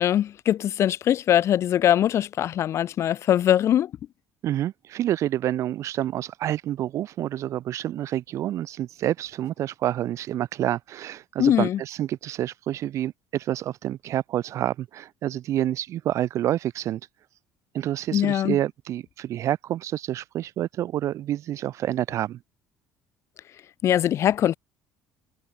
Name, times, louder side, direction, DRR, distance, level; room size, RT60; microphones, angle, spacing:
voice 1, 0.0-3.9 11.4-11.8 18.1-18.6 23.8-24.5, left 11 dB, 50° left, 0.4 m, -21 dB
voice 2, 4.4-17.0 17.7-22.4, right 12 dB, 55° right, 0.3 m, -28 dB
supercardioid pair, 85°, 6 cm